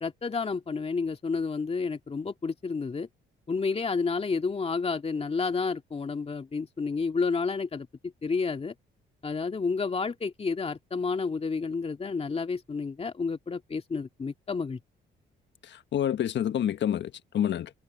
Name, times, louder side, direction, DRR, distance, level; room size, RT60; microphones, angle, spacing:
voice 1, 0.0-3.1 3.5-8.7 9.2-14.8, left 4 dB, 30° left, 2.2 m, -30 dB
voice 2, 15.6-17.7, left 10 dB, 65° left, 1.4 m, -28 dB
cardioid pair, 90°, 20 cm